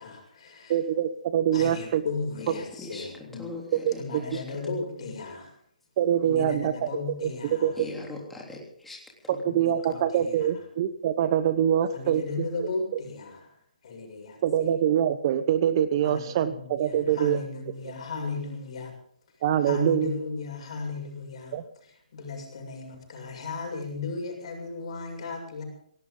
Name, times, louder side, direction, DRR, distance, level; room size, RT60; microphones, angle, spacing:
voice 1, 0.0-0.8 1.5-3.5 4.0-5.6 6.2-7.8 9.4-10.6 11.9-13.5 13.8-14.7 16.0-18.9 19.6-25.6, left 4 dB, 50° left, 2 dB, 6.9 m, -36 dB
voice 2, 0.7-2.0 3.8-4.2 6.0-6.9 7.2-7.7 9.5-12.5 14.4-17.4 19.4-20.1 21.5-21.6, right 10 dB, 35° right, 13 dB, 1.0 m, -24 dB
voice 3, 2.5-4.4 7.7-9.4, left 2 dB, 5° left, -3 dB, 3.4 m, -41 dB
19.5 x 17.5 x 3.9 m, 0.62 s
figure-of-eight pair, 140°, 4 cm